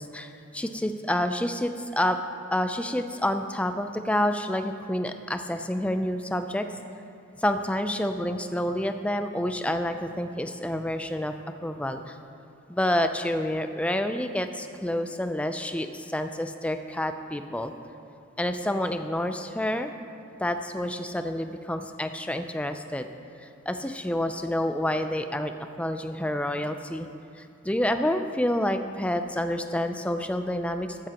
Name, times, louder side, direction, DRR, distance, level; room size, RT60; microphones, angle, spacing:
voice 1, 0.0-2.2 2.5-6.7 7.4-11.3 11.6-12.2 12.7-17.7 18.4-19.9 20.4-23.1 23.4-25.5 25.8-27.1 27.4-31.1, left 1 dB, 5° left, 8 dB, 0.4 m, -28 dB
15.0 x 13.0 x 3.0 m, 2.7 s
head